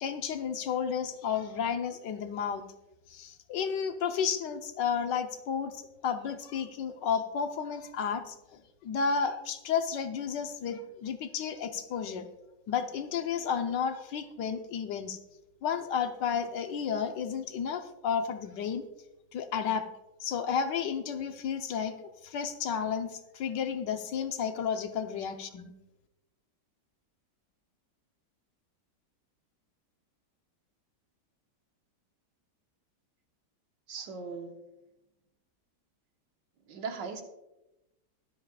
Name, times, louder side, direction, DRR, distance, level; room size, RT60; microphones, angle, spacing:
voice 1, 0.0-2.6 3.1-12.3 12.7-15.2 15.6-18.9 19.3-19.9 20.2-22.0 22.2-25.7, left 7 dB, 80° left, 7 dB, 1.5 m, -32 dB
voice 2, 33.9-34.6 36.7-37.2, right 5 dB, 90° right, 4 dB, 1.9 m, -38 dB
22.5 x 7.6 x 2.4 m, 0.94 s
omnidirectional pair, 1.9 m